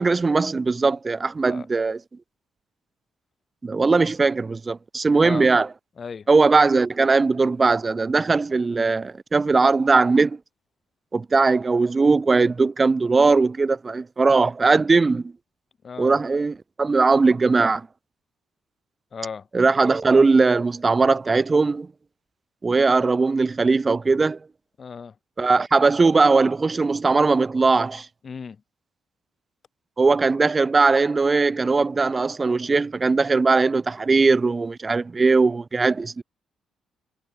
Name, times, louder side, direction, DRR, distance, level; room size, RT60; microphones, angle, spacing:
voice 1, 0.0-2.0 3.6-5.7 6.3-10.4 11.1-15.3 16.0-17.9 19.5-21.9 22.6-24.4 25.4-28.1 30.0-36.2, right 4 dB, 30° right, 0.5 m, -19 dB
voice 2, 6.0-6.3 15.8-16.2 19.1-19.5 24.8-25.1 28.2-28.6, left 6 dB, 40° left, 4.6 m, -35 dB
cardioid pair, 90°, 0 cm